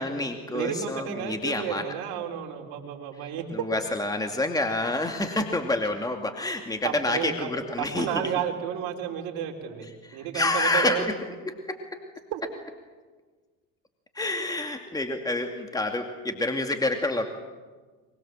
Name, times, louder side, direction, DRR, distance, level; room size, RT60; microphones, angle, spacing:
voice 1, 0.0-1.8 3.5-8.1 10.0-11.1 11.4-12.0 14.2-17.3, left 2 dB, 10° left, 4 dB, 2.4 m, -28 dB
voice 2, 0.5-3.4 6.8-7.5 7.8-11.1 12.3-12.4, right 9 dB, 70° right, 1 dB, 4.2 m, -32 dB
23.5 x 22.5 x 7.6 m, 1.4 s
supercardioid pair, 85°, 39 cm